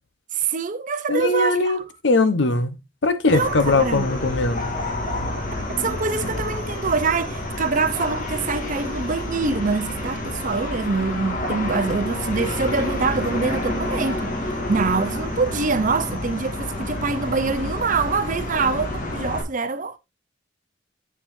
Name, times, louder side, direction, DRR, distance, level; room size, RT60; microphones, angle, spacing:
voice 1, 0.3-1.8 3.3-4.0 5.7-14.3 14.7-20.0, right 4 dB, 40° right, 0.6 m, -25 dB
voice 2, 1.1-2.7 3.0-4.7, left 3 dB, 65° left, 0.9 m, -20 dB
sound 1, 3.3-19.4, left 1 dB, 45° left, 1.8 m, -29 dB
7.3 x 7.1 x 2.6 m
head